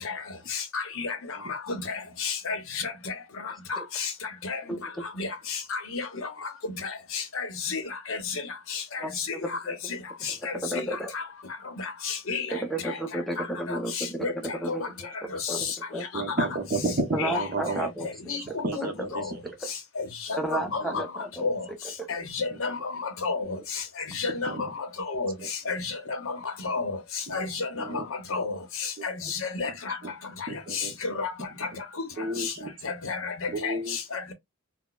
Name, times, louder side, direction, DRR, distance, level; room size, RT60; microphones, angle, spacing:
voice 1, 0.5-1.2 1.7-2.9 3.7-4.1 4.4-4.6 5.2-5.3 5.7-6.0 7.1-7.8 8.1-8.2 8.7-8.8 10.2-10.9 11.1-11.2 12.0-12.5 13.7-14.3 14.7-14.8 16.4-16.5 17.2-17.4 18.3-18.4 18.8-18.9 19.1-19.2 20.0-21.0 21.4-21.6 22.1-22.9 23.2-23.5 24.1-24.5 25.1-25.3 25.7-26.2 26.6-27.0 27.3-28.0 28.3-28.5 29.0-30.0 30.7-31.3 32.8-33.7 34.1-34.3, left 4 dB, 65° left, 0.7 m, -31 dB
voice 2, 10.5-11.1 12.5-14.8 15.5-16.1 17.1-18.1 18.5-18.9 19.2-19.3 19.6-19.7 20.4-21.5 22.0-22.1, right 1 dB, ahead, 0.6 m, -32 dB
voice 3, 16.1-17.9 18.3-19.4 20.6-21.0 24.5-24.7 27.3-27.4 27.7-28.1 29.0-29.1 29.6-29.7 30.0-30.1 30.5-31.0 32.2-32.7 33.5-34.0, right 2 dB, 40° right, 0.8 m, -32 dB
3.9 x 2.0 x 2.2 m
head